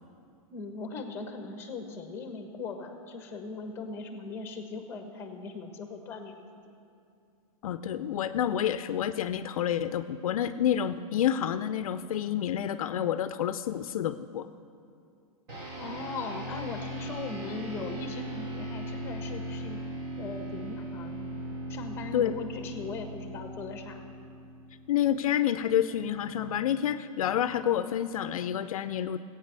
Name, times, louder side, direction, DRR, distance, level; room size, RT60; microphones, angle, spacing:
voice 1, 0.5-6.4 15.7-19.8 20.2-21.3 21.7-24.0, left 4 dB, 15° left, 5 dB, 1.2 m, -39 dB
voice 2, 7.6-14.5 22.1-22.3 24.9-29.2, left 10 dB, 70° left, 12 dB, 0.5 m, -28 dB
sound 1, 15.5-25.1, right 1 dB, 35° right, 2.7 m, -38 dB
15.0 x 8.8 x 6.7 m, 2.5 s
hypercardioid pair, 155°, 19 cm